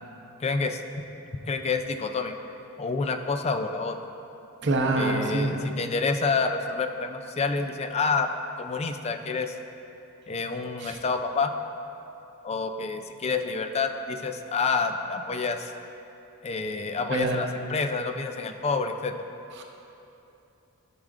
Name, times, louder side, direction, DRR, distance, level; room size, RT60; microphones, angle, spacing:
voice 1, 0.4-0.8 1.5-2.3 2.8-4.0 5.0-8.3 8.6-9.6 10.3-11.5 12.4-15.7 16.4-19.3, left 4 dB, 30° left, 7 dB, 0.4 m, -28 dB
voice 2, 4.6-5.5 10.8-11.0 17.1-17.4 19.6-19.7, right 2 dB, 55° right, 2 dB, 0.8 m, -25 dB
13.5 x 6.4 x 2.5 m, 2.9 s
head